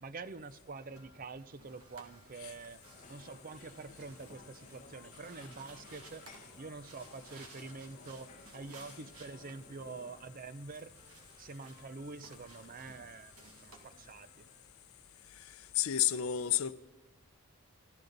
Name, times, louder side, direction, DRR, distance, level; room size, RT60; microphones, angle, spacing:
voice 1, 0.0-2.8 3.1-10.9 11.4-14.5, right 4 dB, 40° right, 0.5 m, -47 dB
sound 1, 0.6-14.6, left 1 dB, 20° right, 5.1 m, -65 dB
sound 2, 0.8-14.3, right 2 dB, 85° right, 2.3 m, -58 dB
sound 3, 2.9-10.2, left 3 dB, 35° left, 1.2 m, -58 dB
voice 2, 15.7-16.7, left 12 dB, 65° left, 0.6 m, -30 dB
26.0 x 13.0 x 4.0 m
head